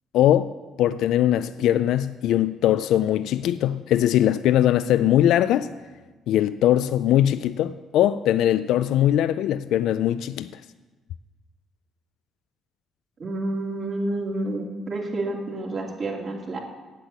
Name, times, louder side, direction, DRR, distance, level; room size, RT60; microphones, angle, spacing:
voice 1, 0.1-0.5 0.8-5.7 6.3-10.6, left 12 dB, 75° left, 0.3 m, -21 dB
voice 2, 13.2-16.6, right 2 dB, 45° right, 2.8 m, -29 dB
8.3 x 7.8 x 8.0 m
supercardioid pair, 75°, 0 cm